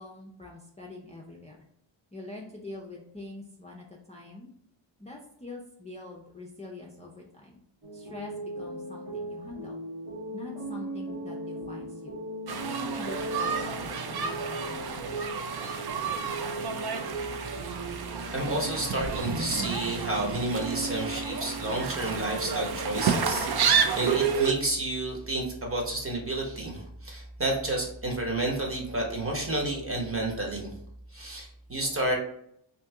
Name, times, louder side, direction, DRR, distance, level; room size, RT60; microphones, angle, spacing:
voice 1, 0.0-1.6 2.1-4.5 5.0-7.6 7.9-9.8 10.3-12.1 12.7-15.0, left 2 dB, 15° left, -2 dB, 0.5 m, -44 dB
sound 1, 7.8-23.3, right 1 dB, 85° right, 1.5 m, -38 dB
sound 2, 12.5-24.5, right 6 dB, 55° right, 0.5 m, -30 dB
voice 2, 18.3-30.7 31.1-32.2, right 1 dB, 30° right, 0 dB, 1.0 m, -30 dB
2.8 x 2.6 x 3.4 m, 0.72 s
cardioid pair, 65°, 47 cm